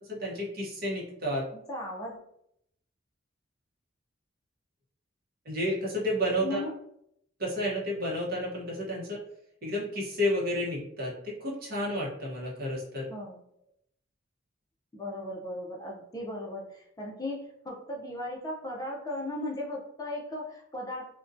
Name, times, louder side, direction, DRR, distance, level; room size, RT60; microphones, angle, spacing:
voice 1, 0.0-1.5 5.4-6.6 7.4-9.2 9.6-13.1, equal, 50° right, -3 dB, 0.7 m, -31 dB
voice 2, 1.5-2.2 6.4-6.7 13.1-13.4 14.9-21.1, left 1 dB, 20° left, -2 dB, 0.4 m, -37 dB
2.6 x 2.1 x 2.4 m, 0.73 s
head